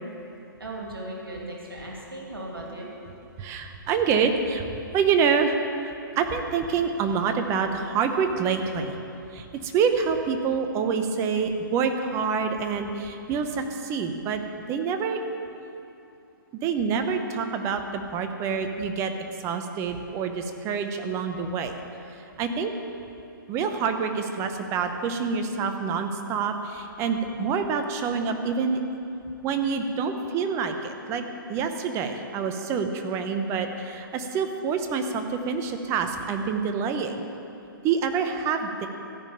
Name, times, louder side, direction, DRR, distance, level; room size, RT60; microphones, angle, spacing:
voice 1, 0.6-2.9, right 1 dB, 90° right, -2 dB, 2.6 m, -37 dB
voice 2, 3.4-5.6 5.8-8.9 9.3-14.4 14.7-15.2 16.6-19.1 19.4-21.7 22.4-22.7 23.5-28.8 29.4-31.2 31.5-37.2 37.8-38.9, right 6 dB, 25° right, 6 dB, 0.9 m, -27 dB
14.0 x 5.3 x 8.6 m, 2.8 s
hypercardioid pair, 130°, 12 cm